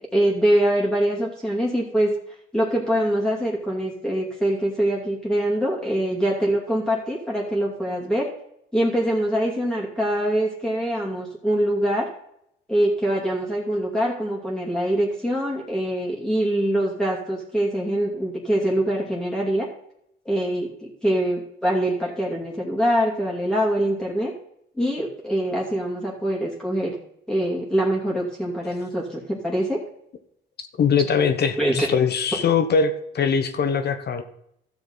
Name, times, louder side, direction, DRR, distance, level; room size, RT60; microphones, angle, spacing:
voice 1, 0.1-2.1 2.5-8.3 8.7-12.1 12.7-19.7 20.2-24.3 24.8-27.0 27.3-29.8 31.6-31.9, right 1 dB, 5° left, -4 dB, 2.6 m, -24 dB
voice 2, 30.6-34.2, left 6 dB, 55° left, 9 dB, 1.2 m, -22 dB
13.0 x 7.0 x 4.1 m, 0.74 s
cardioid pair, 90°, 20 cm